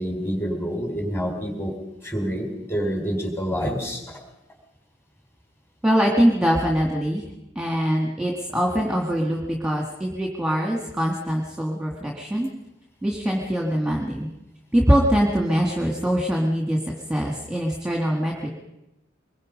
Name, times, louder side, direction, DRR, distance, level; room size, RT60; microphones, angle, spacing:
voice 1, 0.0-1.7 2.0-4.0, equal, 15° left, 2 dB, 4.3 m, -27 dB
voice 2, 5.8-7.3 7.6-12.5 13.0-14.3 14.7-16.8 17.1-18.5, equal, 5° right, -1 dB, 2.1 m, -23 dB
24.5 x 21.5 x 5.3 m, 0.90 s
head